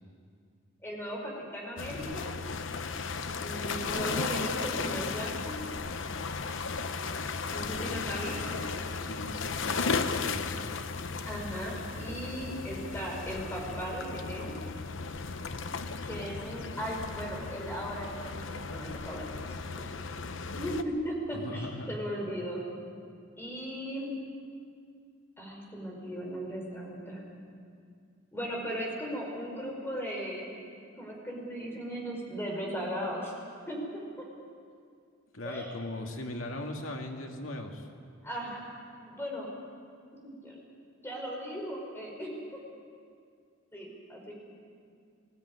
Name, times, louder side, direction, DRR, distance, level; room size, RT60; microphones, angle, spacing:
voice 1, 0.8-2.2 3.4-5.6 7.5-8.7 11.2-14.6 16.0-19.3 20.5-22.6 23.4-24.1 25.4-27.2 28.3-30.6 31.0-33.3 33.7-34.3 35.4-35.7 38.2-38.6 39.0-39.5 40.1-40.6 41.0-42.6 43.7-44.3, equal, 10° left, -2 dB, 5.2 m, -37 dB
sound 1, 1.8-20.8, left 4 dB, 65° left, 0.8 m, -35 dB
voice 2, 7.3-8.5 9.0-10.7 21.3-21.9 35.3-37.9, left 1 dB, 90° left, 2 dB, 2.3 m, -40 dB
20.5 x 16.0 x 9.7 m, 2.3 s
head